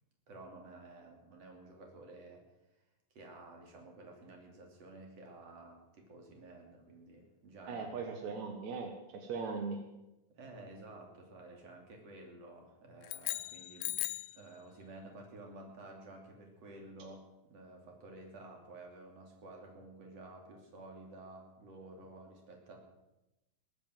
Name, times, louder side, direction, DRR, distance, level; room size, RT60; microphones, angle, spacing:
voice 1, 0.3-2.4 3.1-7.9 10.3-22.8, right 2 dB, 40° right, 2 dB, 3.5 m, -52 dB
voice 2, 7.7-9.8, right 4 dB, 65° right, 4 dB, 1.8 m, -39 dB
sound 1, 13.0-14.4, left 17 dB, 90° left, 3.2 m, -38 dB
20.5 x 8.9 x 7.6 m, 0.96 s
omnidirectional pair, 5.4 m